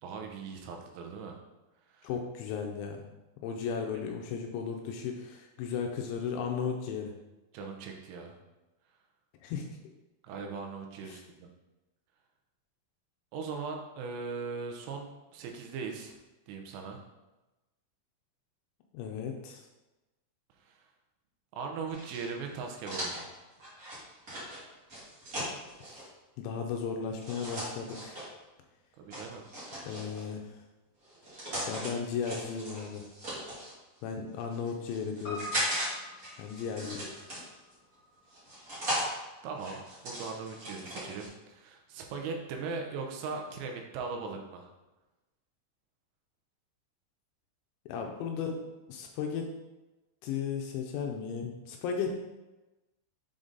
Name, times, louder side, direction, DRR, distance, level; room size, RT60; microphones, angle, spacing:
voice 1, 0.0-1.4 1.9-2.1 7.5-8.4 10.2-11.5 13.3-16.2 16.5-17.0 20.6-20.8 21.5-23.3 29.0-29.4 39.4-44.7, right 4 dB, 80° right, 2 dB, 3.1 m, -39 dB
voice 2, 2.0-3.1 3.4-7.1 9.4-9.8 11.0-11.2 18.9-19.6 26.4-28.2 29.9-30.6 31.7-33.0 34.0-35.5 36.4-37.1 47.9-48.6 48.9-49.5 50.2-52.2, left 6 dB, 80° left, 3 dB, 2.8 m, -35 dB
sound 1, 21.9-26.0 27.2-28.3 29.1-30.3 31.0-31.9 32.2-33.7 34.4-35.9 36.2-37.7 38.3-39.1 39.6-41.3, equal, 60° right, 0.9 m, -38 dB
Piano, 35.2-39.8 40.0-40.1, left 2 dB, 50° left, 1.1 m, -47 dB
7.6 x 3.7 x 3.9 m, 1.1 s
omnidirectional pair, 5.6 m